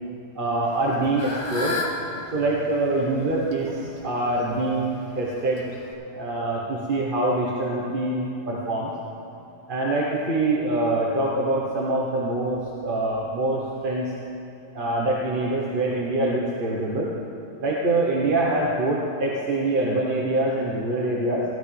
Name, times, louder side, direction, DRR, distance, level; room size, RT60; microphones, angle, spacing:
voice 1, 0.3-1.8 2.3-5.6 6.1-9.0 9.7-14.1 14.7-17.1 17.6-21.4, right 2 dB, 40° right, -3 dB, 1.1 m, -24 dB
Fowl / Bird, 0.6-5.9, left 2 dB, 45° left, 1.6 m, -35 dB
17.0 x 12.5 x 3.4 m, 2.7 s
omnidirectional pair, 1.7 m